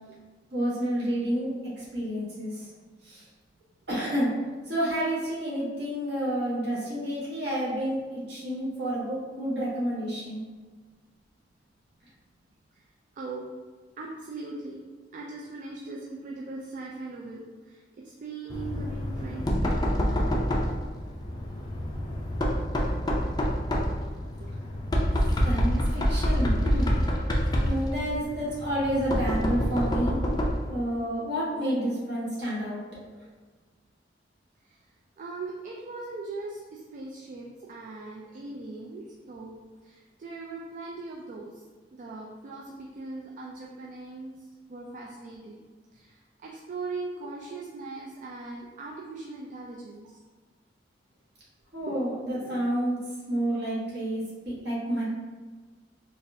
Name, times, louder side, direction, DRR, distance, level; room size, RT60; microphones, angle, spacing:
voice 1, 0.5-1.5 1.8-2.7 3.1-3.2 3.9-4.3 4.7-10.4 25.4-26.9 27.6-30.1 30.7-32.8 51.7-53.0 53.3-55.0, right 1 dB, 65° right, -8 dB, 1.4 m, -29 dB
voice 2, 14.0-14.8 15.1-17.8 18.0-20.5 31.7-31.9 34.7-34.8 35.2-39.6 39.8-41.5 41.9-44.4 44.7-45.6 45.9-50.2 51.8-52.0 52.3-52.6, right 3 dB, 45° right, -2 dB, 0.3 m, -40 dB
Knock, 18.5-30.7, equal, 20° left, 0.4 m, -27 dB
4.0 x 2.4 x 2.6 m, 1.4 s
head